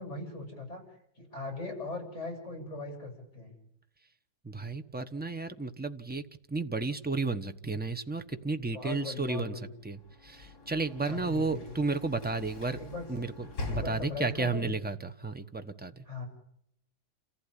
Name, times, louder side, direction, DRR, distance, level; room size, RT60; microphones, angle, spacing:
voice 1, 0.0-3.6 8.7-9.7 11.1-11.7 12.8-13.1 13.7-14.7 16.1-16.3, left 2 dB, 35° left, 4 dB, 8.0 m, -39 dB
voice 2, 4.4-6.2 6.5-12.8 13.1-16.0, right 3 dB, 5° right, 9 dB, 0.8 m, -33 dB
Sliding door / Slam, 9.9-14.6, left 2 dB, 55° left, 5.2 m, -43 dB
29.0 x 15.0 x 10.0 m, 0.76 s
omnidirectional pair, 2.1 m